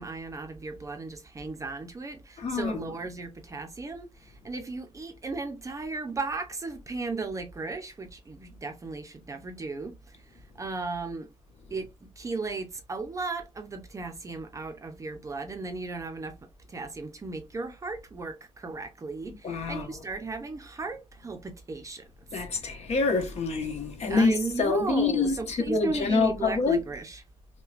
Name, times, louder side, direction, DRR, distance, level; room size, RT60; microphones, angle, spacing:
voice 1, 0.0-11.3 11.7-22.7 24.1-27.2, right 3 dB, 25° right, 0.6 m, -36 dB
voice 2, 2.4-2.8 19.3-19.9 22.3-26.8, left 4 dB, 60° left, 1.3 m, -26 dB
5.6 x 2.2 x 2.5 m
wide cardioid pair, 165°, 13 cm